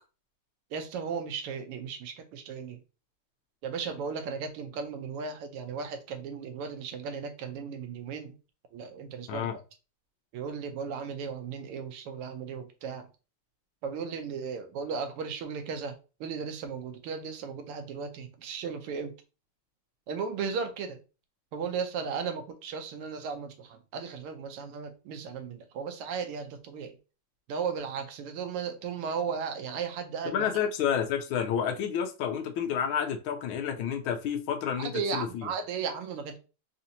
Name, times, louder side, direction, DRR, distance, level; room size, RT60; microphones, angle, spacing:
voice 1, 0.7-2.8 3.6-8.3 8.7-9.5 10.3-13.1 13.8-15.9 16.2-19.1 20.1-21.0 21.5-26.9 27.5-30.5 34.9-36.4, right 6 dB, 85° right, 1.6 m, -35 dB
voice 2, 30.2-35.5, left 8 dB, 75° left, 1.3 m, -30 dB
4.2 x 2.7 x 2.5 m
omnidirectional pair, 2.4 m